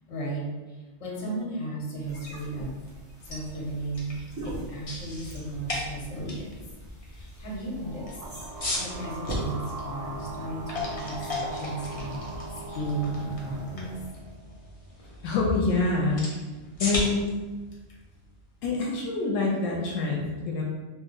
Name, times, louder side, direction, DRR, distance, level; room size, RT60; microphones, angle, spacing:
voice 1, 0.1-2.7 3.2-4.2 4.4-6.7 7.1-8.2 8.7-12.2 12.5-14.0, right 2 dB, 65° left, -3 dB, 1.1 m, -35 dB
sound 1, 2.0-14.1, right 1 dB, 15° right, 1.0 m, -43 dB
sound 2, 3.1-19.0, left 2 dB, 40° left, 0.5 m, -38 dB
sound 3, 7.5-15.0, right 2 dB, 70° right, 0.8 m, -40 dB
voice 2, 15.2-16.3 16.8-17.3 18.6-20.6, left 3 dB, 85° left, -2 dB, 1.0 m, -26 dB
3.0 x 2.1 x 3.6 m, 1.2 s
omnidirectional pair, 1.3 m